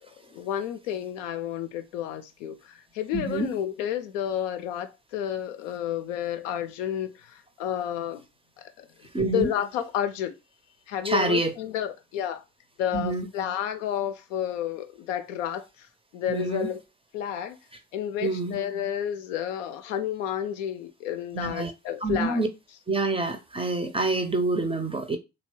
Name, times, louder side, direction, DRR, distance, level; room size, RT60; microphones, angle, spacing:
voice 1, 0.0-8.2 9.2-10.3 10.9-12.4 12.8-15.9 16.1-16.8 17.1-17.6 17.9-22.4, left 10 dB, 70° left, 0.5 m, -31 dB
voice 2, 3.1-3.5 9.1-9.5 11.0-11.5 12.9-13.3 16.3-16.7 18.2-18.6 21.3-21.7 22.0-22.5 22.9-25.2, right 2 dB, 15° right, 0.5 m, -27 dB
2.8 x 2.7 x 3.1 m
figure-of-eight pair, 40°, 39 cm